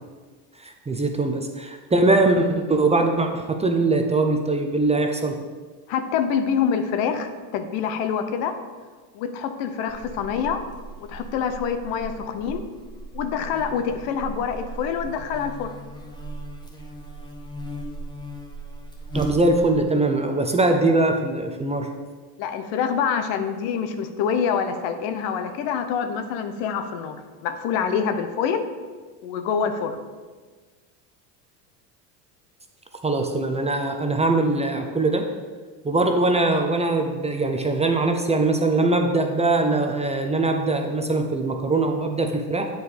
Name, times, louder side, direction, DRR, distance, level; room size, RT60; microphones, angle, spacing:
voice 1, 0.6-5.4 19.1-21.9 33.0-35.3 35.8-42.7, right 2 dB, 15° right, 4 dB, 0.6 m, -22 dB
voice 2, 5.9-8.5 9.1-10.6 11.1-12.6 13.1-15.7 22.4-27.2 27.4-28.6 29.2-30.0, left 7 dB, 65° left, 8 dB, 0.9 m, -26 dB
Buzz, 9.9-19.8, right 1 dB, 10° left, 1.1 m, -37 dB
8.0 x 4.8 x 5.0 m, 1.4 s
supercardioid pair, 95°, 47 cm